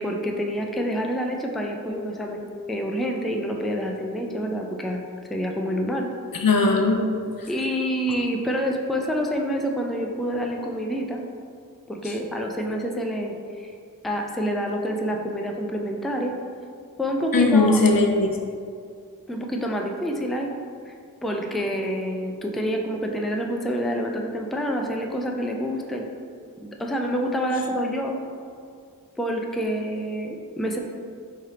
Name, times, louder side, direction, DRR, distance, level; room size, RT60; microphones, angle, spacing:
voice 1, 0.0-5.0 5.3-6.1 7.5-11.2 11.9-13.7 14.0-16.3 17.0-17.8 19.3-20.5 20.9-21.0 21.2-26.1 26.6-28.2 29.2-30.8, equal, ahead, 1 dB, 0.4 m, -27 dB
voice 2, 6.3-7.0 17.3-18.3, left 3 dB, 75° left, 1 dB, 0.6 m, -19 dB
4.3 x 3.3 x 3.7 m, 2.3 s
wide cardioid pair, 50°, 35 cm